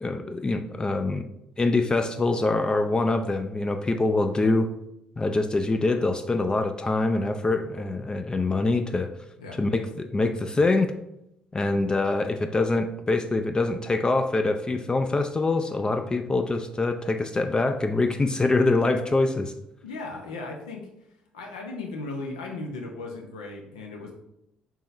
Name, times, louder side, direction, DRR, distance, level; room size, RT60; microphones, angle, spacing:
voice 1, 0.0-1.2 1.6-4.7 5.2-9.1 9.5-10.9 11.5-19.5, left 2 dB, 25° left, 7 dB, 0.3 m, -24 dB
voice 2, 19.8-20.9 21.3-24.1, left 3 dB, 90° left, 1 dB, 0.6 m, -36 dB
3.6 x 2.9 x 3.2 m, 0.82 s
hypercardioid pair, 50°, 3 cm